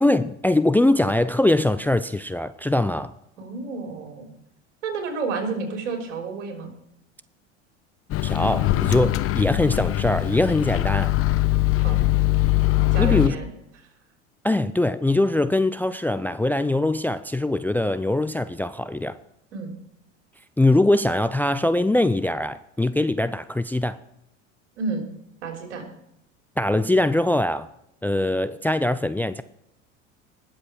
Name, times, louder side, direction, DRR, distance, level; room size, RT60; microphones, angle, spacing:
voice 1, 0.0-3.1 8.2-11.1 13.0-13.4 14.4-19.2 20.6-24.0 26.6-27.7 28.0-29.4, left 1 dB, 5° left, 0.4 m, -22 dB
voice 2, 3.4-4.3 4.8-6.7 11.8-12.0 12.9-13.5 19.5-19.7 24.8-25.1 25.4-25.8, right 4 dB, 75° right, 3.6 m, -30 dB
Microwave oven, 8.1-13.3, left 17 dB, 40° left, 0.7 m, -22 dB
Drum, 8.6-12.1, left 11 dB, 65° left, 2.5 m, -34 dB
20.0 x 7.6 x 4.5 m
hypercardioid pair, 75°, 36 cm